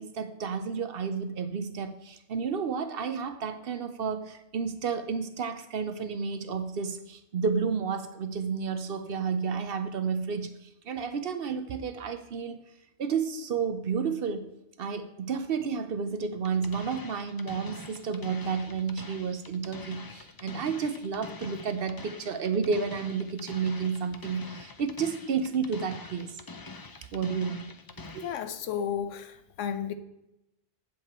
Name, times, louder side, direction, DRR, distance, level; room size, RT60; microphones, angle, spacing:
voice 1, 0.0-12.6 13.0-14.5 14.8-26.3 27.1-27.7 28.1-28.2, right 6 dB, 55° right, 0.8 m, -31 dB
sound 1, 16.4-28.4, left 3 dB, 35° left, 0.3 m, -45 dB
voice 2, 28.2-29.9, left 8 dB, 85° left, 1.1 m, -33 dB
8.2 x 7.5 x 4.3 m
omnidirectional pair, 1.3 m